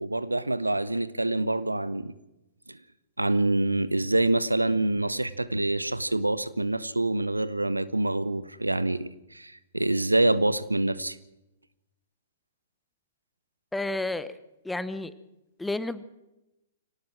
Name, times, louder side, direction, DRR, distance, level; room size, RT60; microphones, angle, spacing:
voice 1, 0.0-2.1 2.7-2.8 3.2-11.2, right 2 dB, 90° right, 16 dB, 1.0 m, -26 dB
voice 2, 13.7-14.4 14.6-15.1 15.6-16.0, left 2 dB, 5° left, 14 dB, 1.0 m, -31 dB
24.5 x 18.5 x 6.1 m, 0.93 s
figure-of-eight pair, 115°, 0 cm